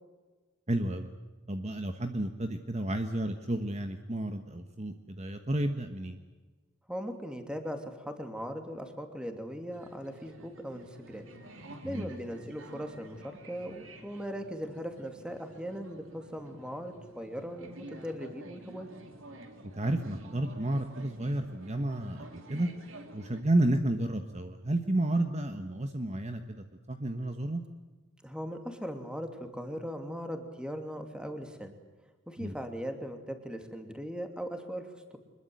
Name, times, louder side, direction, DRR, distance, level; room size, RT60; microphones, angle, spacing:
voice 1, 0.7-1.1 1.5-6.2 11.8-12.1 19.8-22.7 23.1-27.6 32.4-32.5, right 1 dB, 35° right, 7 dB, 1.3 m, -31 dB
voice 2, 6.9-11.3 11.8-18.9 28.2-31.7 32.3-35.2, equal, 5° right, 5 dB, 2.7 m, -39 dB
sound 1, 9.7-23.4, right 1 dB, 70° right, 3.2 m, -50 dB
25.0 x 21.5 x 7.9 m, 1.3 s
head